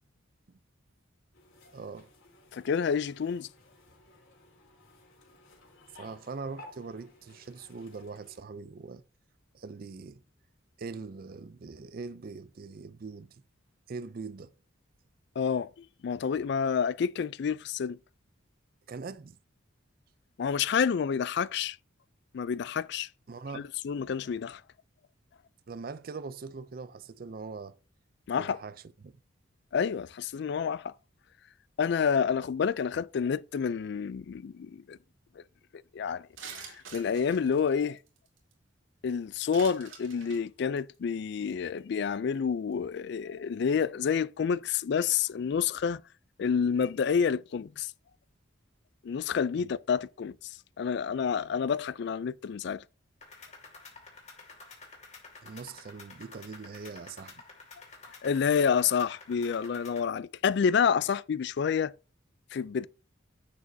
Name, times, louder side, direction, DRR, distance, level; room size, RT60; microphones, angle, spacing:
sound 1, 1.3-8.4, left 2 dB, 80° left, 3.6 m, -56 dB
voice 1, 1.7-2.1 5.9-9.0 9.5-10.2 10.8-13.4 13.9-14.5 18.9-19.4 23.3-23.7 24.0-24.1 25.7-27.8 28.4-29.1 49.6-49.8 55.4-57.3, right 4 dB, 45° right, 0.4 m, -42 dB
voice 2, 2.5-3.5 15.4-18.0 20.4-21.8 22.3-23.1 23.5-24.6 28.3-28.6 29.7-30.9 31.8-35.0 35.9-36.3 36.7-38.0 39.0-46.0 46.4-47.9 49.0-52.8 58.2-61.9 62.5-62.9, left 6 dB, 55° left, 0.3 m, -29 dB
sound 2, 36.4-38.5 39.5-40.4 40.8-41.0 41.5-41.6 41.8-42.0 42.3-42.4, right 6 dB, 80° right, 2.1 m, -46 dB
sound 3, 53.2-60.1, left 3 dB, 35° left, 2.2 m, -50 dB
9.8 x 7.3 x 2.7 m
head